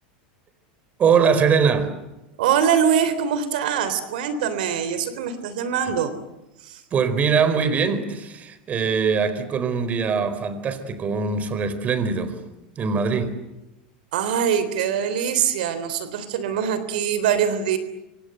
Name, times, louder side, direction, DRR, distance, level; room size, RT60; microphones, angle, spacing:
voice 1, 1.0-2.0 5.8-5.9 6.9-12.4 12.8-13.4, right 6 dB, 30° right, 12 dB, 4.4 m, -22 dB
voice 2, 2.4-6.1 6.6-6.8 14.1-17.8, right 8 dB, 75° right, 12 dB, 3.5 m, -23 dB
27.5 x 26.0 x 7.9 m, 0.95 s
hypercardioid pair, 110°, 5 cm